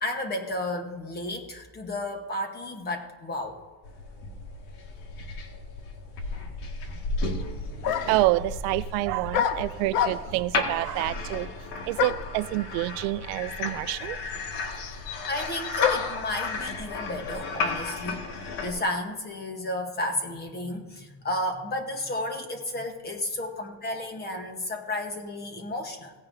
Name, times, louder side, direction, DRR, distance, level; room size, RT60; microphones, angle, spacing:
voice 1, 0.0-3.6 15.0-26.1, left 1 dB, 20° left, 1.1 m, -33 dB
sound 1, 3.8-18.7, left 3 dB, 85° left, 2.0 m, -34 dB
sound 2, 7.4-7.5 7.8-8.3 9.3-10.5 12.0-12.4 13.3-13.4 13.6-16.2, left 9 dB, 45° left, 0.6 m, -28 dB
voice 2, 7.7-11.5 11.9-14.2, right 18 dB, 75° right, 0.5 m, -28 dB
17.5 x 9.6 x 2.7 m
cardioid pair, 165°, 48 cm